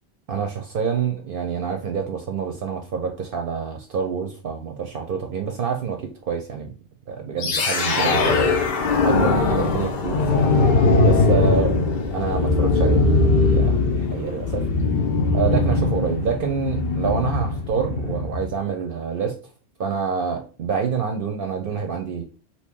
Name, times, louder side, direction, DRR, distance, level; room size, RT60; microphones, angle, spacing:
voice 1, 0.3-6.7 7.1-8.4 9.0-10.6 11.0-11.8 12.1-14.6 15.3-19.4 19.8-22.2, right 6 dB, 65° right, 4 dB, 0.7 m, -27 dB
sound 1, 7.4-18.5, left 3 dB, 65° left, 0.8 m, -20 dB
2.8 x 2.7 x 3.5 m, 0.35 s
omnidirectional pair, 1.1 m